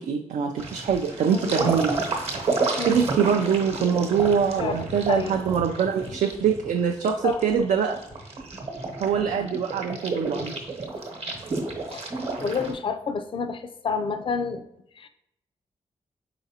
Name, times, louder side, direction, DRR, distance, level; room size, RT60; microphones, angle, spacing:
voice 1, 0.0-2.0 2.9-8.0 9.0-10.5, right 7 dB, 80° right, 2 dB, 0.4 m, -24 dB
sound 1, 0.6-12.7, right 3 dB, 55° right, 1.0 m, -31 dB
voice 2, 1.3-1.7 2.8-3.0 4.6-5.4 7.2-7.4 11.9-12.1 12.4-14.6 15.0-15.1, left 5 dB, 45° left, 9 dB, 0.4 m, -29 dB
4.8 x 3.9 x 2.8 m, 0.81 s
wide cardioid pair, 115°, 12 cm